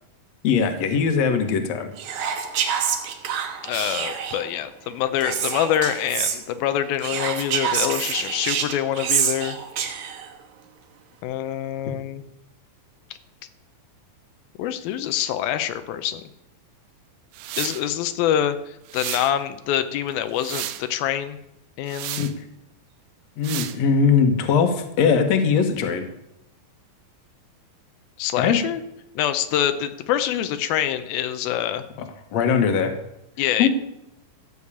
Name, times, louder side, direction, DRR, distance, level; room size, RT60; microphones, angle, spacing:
voice 1, 0.4-1.9 22.2-22.4 23.4-26.1 28.4-28.6 32.3-32.9 33.6-33.7, left 6 dB, 60° left, 7 dB, 2.2 m, -20 dB
Whispering, 2.0-4.5 5.2-6.4 7.0-10.3, right 7 dB, 65° right, 2.3 m, -27 dB
voice 2, 3.6-9.6 11.2-12.2 14.6-16.3 17.6-21.4 21.8-22.2 28.2-28.8 29.2-31.8 33.4-33.7, left 10 dB, 85° left, 10 dB, 2.6 m, -25 dB
sound 1, 17.3-17.8 18.9-19.3 20.1-20.8 21.9-22.3 23.4-23.8, right 13 dB, 85° right, 2.6 m, -32 dB
14.0 x 6.4 x 8.5 m, 0.83 s
omnidirectional pair, 4.1 m